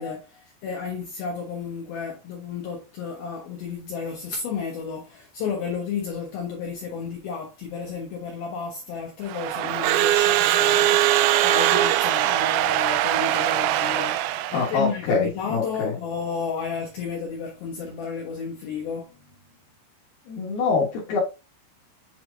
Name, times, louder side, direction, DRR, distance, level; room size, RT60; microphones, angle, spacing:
voice 1, 0.0-19.1, left 6 dB, 85° left, 2.1 m, -32 dB
Crowd / Alarm, 9.3-14.8, right 13 dB, 85° right, 3.2 m, -21 dB
voice 2, 14.5-15.9 20.3-21.2, left 4 dB, 65° left, 2.8 m, -25 dB
8.3 x 4.5 x 2.6 m
omnidirectional pair, 5.9 m